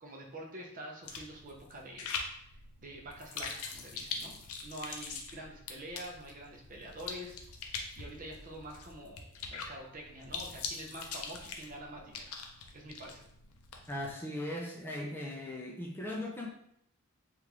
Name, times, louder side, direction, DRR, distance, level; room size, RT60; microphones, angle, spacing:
voice 1, 0.0-4.4 4.6-12.3 12.7-13.3, right 1 dB, 40° right, 0 dB, 0.6 m, -47 dB
sound 1, 1.0-14.1, left 5 dB, 75° left, 0.5 m, -43 dB
voice 2, 13.9-16.5, left 1 dB, 10° left, -1 dB, 0.4 m, -38 dB
3.3 x 2.4 x 2.9 m, 0.72 s
head